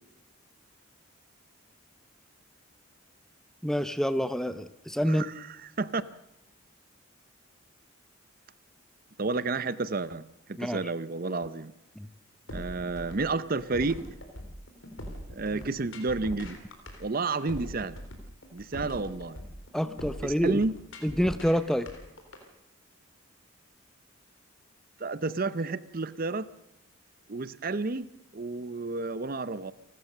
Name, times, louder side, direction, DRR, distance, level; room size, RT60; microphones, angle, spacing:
voice 1, 3.6-5.2 10.6-10.8 12.0-12.1 19.7-20.6 21.0-21.9, equal, ahead, 12 dB, 0.7 m, -27 dB
voice 2, 5.1-5.5 5.8-6.1 9.2-10.2 10.5-11.7 12.5-14.0 15.3-16.6 17.0-18.0 18.5-19.4 20.2-20.7 25.0-26.5 27.3-28.1 28.3-29.7, right 3 dB, 45° right, 16 dB, 0.7 m, -31 dB
sound 1, 12.5-22.4, equal, 65° left, 3.7 m, -41 dB
29.5 x 13.0 x 6.7 m, 0.83 s
head